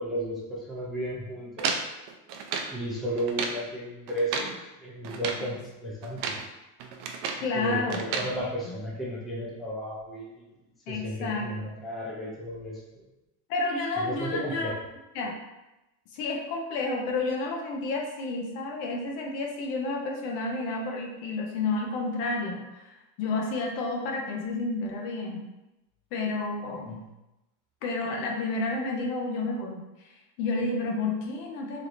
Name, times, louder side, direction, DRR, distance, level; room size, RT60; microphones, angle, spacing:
voice 1, 0.0-1.8 2.7-6.4 7.5-10.5 10.9-13.1 14.0-14.7 26.9-27.1, equal, ahead, -6 dB, 0.5 m, -34 dB
sound 1, 1.6-2.8 3.2-3.6 4.1-4.6 5.0-5.5 6.0-6.5 6.8-7.5 7.9-8.3, right 5 dB, 60° right, 0.5 m, -32 dB
voice 2, 7.4-8.0 8.7-8.8 10.9-11.5 13.5-14.7 15.1-15.3 16.1-22.6 22.9-25.4 26.1-27.0 27.8-29.8 30.4-31.9, left 3 dB, 75° left, 1 dB, 0.9 m, -30 dB
3.3 x 2.8 x 2.5 m, 0.99 s
supercardioid pair, 120°, 49 cm